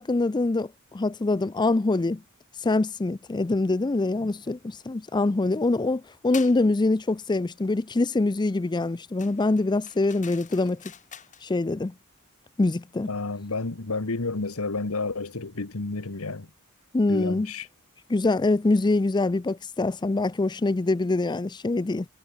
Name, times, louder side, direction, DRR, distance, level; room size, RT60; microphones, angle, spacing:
voice 1, 0.0-2.2 2.6-10.8 11.4-11.9 12.6-13.1 16.9-17.5 18.1-22.1, left 2 dB, 20° left, 0.4 m, -24 dB
sound 1, 6.3-6.6 9.2-11.5, left 8 dB, 35° left, 1.4 m, -45 dB
voice 2, 13.1-16.5 17.1-17.7, left 3 dB, 70° left, 1.3 m, -30 dB
head